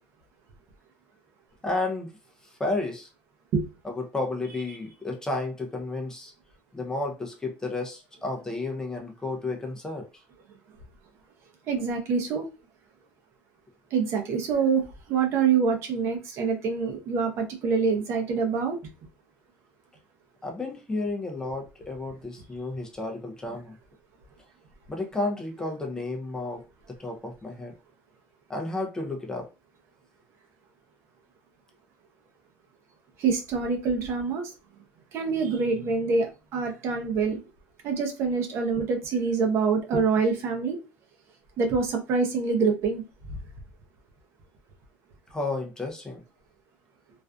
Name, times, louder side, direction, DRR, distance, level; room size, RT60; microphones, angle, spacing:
voice 1, 1.6-2.1 2.4-3.1 3.8-6.3 6.7-10.1 20.4-23.8 24.9-26.6 26.9-27.7 28.5-29.5 45.3-46.2, left 2 dB, 10° left, 2 dB, 0.4 m, -32 dB
voice 2, 11.7-12.5 13.9-18.8 33.2-34.4 35.1-37.4 37.8-40.8 41.6-43.4, right 5 dB, 50° right, 4 dB, 0.6 m, -26 dB
2.4 x 2.4 x 2.2 m, 0.29 s
cardioid pair, 140°, 6 cm